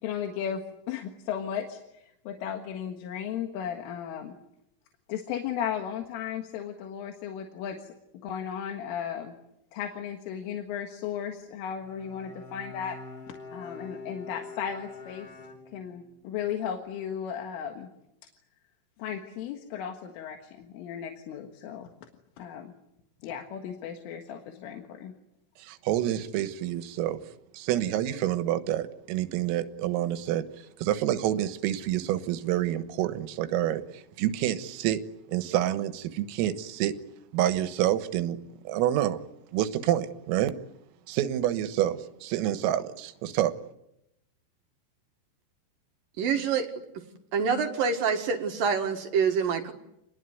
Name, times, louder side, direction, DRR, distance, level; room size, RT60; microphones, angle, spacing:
voice 1, 0.0-0.6 0.9-4.4 5.1-7.9 8.2-9.3 9.7-13.0 13.3-15.3 15.7-17.9 19.0-21.9 22.4-22.7 23.2-25.1, left 8 dB, 80° left, 4 dB, 4.1 m, -35 dB
Bowed string instrument, 11.8-16.2, left 3 dB, 20° left, 6.5 m, -44 dB
voice 2, 25.6-27.2 27.5-35.0 35.3-37.0 37.3-38.4 38.7-39.2 39.5-40.6 41.1-43.5, right 12 dB, 90° right, 11 dB, 3.9 m, -28 dB
voice 3, 46.2-46.7 47.3-49.7, right 6 dB, 55° right, 6 dB, 2.8 m, -26 dB
28.5 x 20.5 x 9.4 m, 0.84 s
omnidirectional pair, 5.8 m